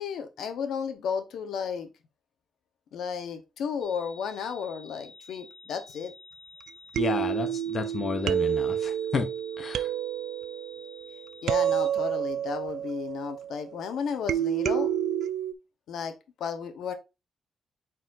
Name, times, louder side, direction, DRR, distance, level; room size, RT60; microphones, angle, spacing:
voice 1, 0.0-1.9 2.9-6.1 11.4-14.9 15.9-16.9, left 6 dB, 80° left, 1.1 m, -33 dB
sound 1, 3.8-11.9, left 2 dB, 50° right, 1.7 m, -51 dB
sound 2, 6.7-6.8 7.0-13.7 14.3-15.5, right 10 dB, 75° right, 0.4 m, -29 dB
voice 2, 7.0-9.3 9.6-9.9, left 5 dB, 35° left, 0.8 m, -31 dB
8.6 x 4.2 x 2.6 m
wide cardioid pair, 150°, 0 cm